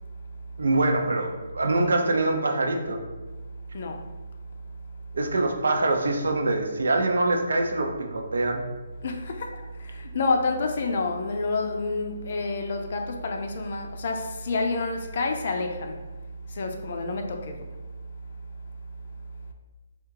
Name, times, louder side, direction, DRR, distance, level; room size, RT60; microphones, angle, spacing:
voice 1, 0.6-3.0 5.1-8.6, right 2 dB, 85° right, 3 dB, 0.7 m, -24 dB
voice 2, 3.7-4.1 9.0-16.2 16.5-17.8 18.0-18.1, left 3 dB, 40° left, 4 dB, 0.4 m, -29 dB
3.6 x 2.4 x 4.6 m, 1.2 s
hypercardioid pair, 175°, 0 cm